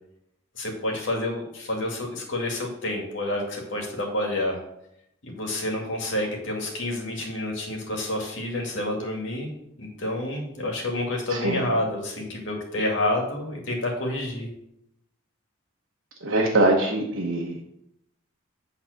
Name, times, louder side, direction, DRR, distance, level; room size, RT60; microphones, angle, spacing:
voice 1, 0.6-4.6 5.2-9.5 9.8-14.5, left 1 dB, 60° left, 0 dB, 2.2 m, -29 dB
voice 2, 11.3-11.6 16.2-17.6, right 2 dB, 70° right, -2 dB, 1.2 m, -23 dB
8.7 x 4.1 x 6.5 m, 0.79 s
head